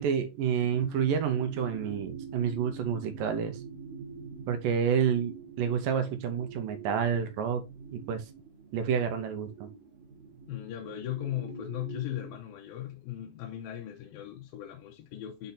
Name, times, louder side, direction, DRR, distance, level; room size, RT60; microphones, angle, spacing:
voice 1, 0.0-3.6 4.5-7.6 7.9-8.2 8.7-9.7, right 7 dB, 80° right, 2.6 m, -29 dB
sound 1, 0.6-12.4, right 5 dB, 60° right, 2.9 m, -45 dB
voice 2, 10.5-15.5, left 12 dB, 85° left, 2.7 m, -38 dB
6.9 x 4.2 x 3.9 m
omnidirectional pair, 4.0 m